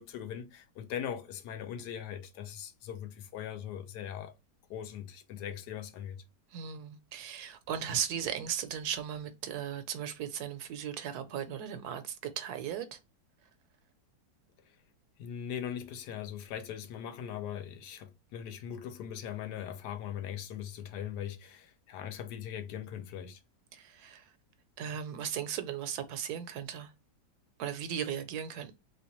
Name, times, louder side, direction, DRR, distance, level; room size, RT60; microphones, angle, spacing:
voice 1, 0.0-4.3 4.7-6.2 15.2-23.4, left 9 dB, 75° left, 1.2 m, -40 dB
voice 2, 6.5-13.0 23.7-24.3 24.8-26.9 27.6-28.8, right 9 dB, 75° right, 1.0 m, -37 dB
3.2 x 3.1 x 2.9 m
omnidirectional pair, 1.8 m